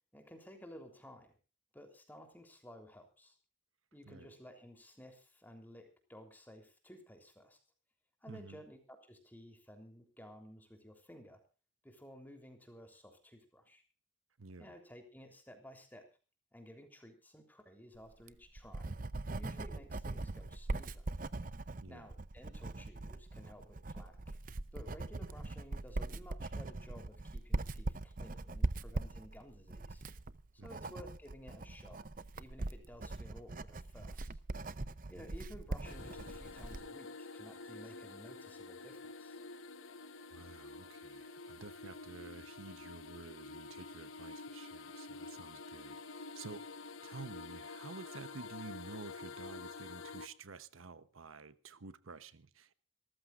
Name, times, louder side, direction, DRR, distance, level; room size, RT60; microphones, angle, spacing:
voice 1, 0.1-1.3 1.7-3.4 3.9-7.6 8.2-11.4 11.8-13.8 14.6-16.1 16.5-18.9 19.3-21.1 21.9-24.3 24.7-30.0 30.6-32.0 32.4-34.3 35.1-39.4, equal, 10° left, 3.4 m, -55 dB
voice 2, 8.3-8.6 14.4-14.7 21.8-22.1 30.6-30.9 40.3-46.7 47.0-52.7, right 3 dB, 80° right, 0.9 m, -51 dB
Writing, 18.1-36.9, right 2 dB, 40° right, 0.7 m, -41 dB
sound 1, 35.8-50.3, left 3 dB, 80° left, 1.1 m, -48 dB
26.5 x 14.0 x 2.5 m
head